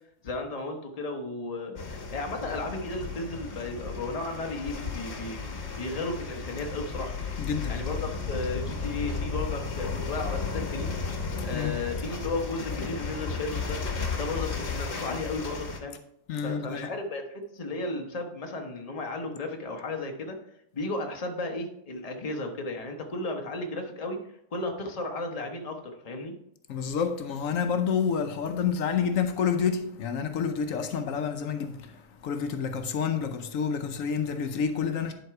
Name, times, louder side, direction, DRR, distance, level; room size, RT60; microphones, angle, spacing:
voice 1, 0.2-7.1 7.7-10.9 11.4-13.8 14.1-16.0 16.4-20.4 20.7-24.2 24.5-26.4, left 2 dB, 30° left, 1.0 m, -34 dB
sound 1, 1.8-15.8, left 4 dB, 55° left, 1.3 m, -34 dB
voice 2, 7.4-7.8 11.4-11.8 16.3-16.9 26.7-35.1, left 6 dB, 75° left, 1.1 m, -29 dB
10.5 x 4.0 x 4.7 m
omnidirectional pair, 1.4 m